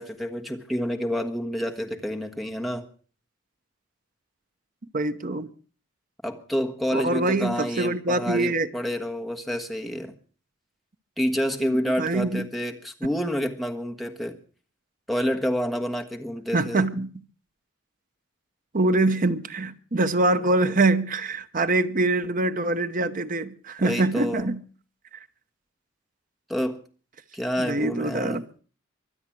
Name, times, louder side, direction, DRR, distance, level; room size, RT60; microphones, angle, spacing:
voice 1, 0.0-2.9 6.2-10.1 11.2-14.4 15.1-16.8 23.8-24.5 26.5-26.8 27.3-28.4, equal, ahead, 1.5 m, -28 dB
voice 2, 4.9-5.5 6.9-8.7 11.6-12.5 16.5-17.1 18.7-24.6 27.6-28.4, right 2 dB, 45° right, 0.9 m, -24 dB
24.0 x 8.0 x 6.1 m
head